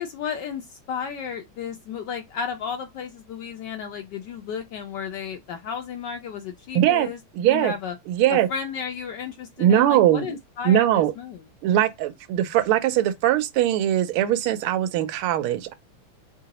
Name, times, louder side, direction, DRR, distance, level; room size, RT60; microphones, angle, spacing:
voice 1, 0.0-7.9 8.3-11.4, left 7 dB, 75° left, 1.0 m, -33 dB
voice 2, 6.7-7.1 7.4-7.7 8.1-8.5 9.6-10.3 10.6-11.1 11.6-15.7, right 11 dB, 85° right, 1.5 m, -21 dB
3.8 x 3.5 x 2.8 m
omnidirectional pair, 2.3 m